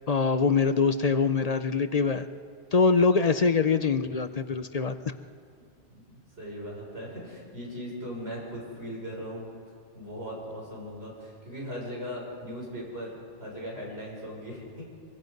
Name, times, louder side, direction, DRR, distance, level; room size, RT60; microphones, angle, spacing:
voice 1, 0.1-2.3 2.7-5.1, left 4 dB, 40° left, 11 dB, 0.6 m, -24 dB
voice 2, 5.9-9.5 9.9-14.8, equal, 55° right, -3 dB, 6.5 m, -39 dB
24.0 x 23.5 x 5.4 m, 2.3 s
omnidirectional pair, 1.2 m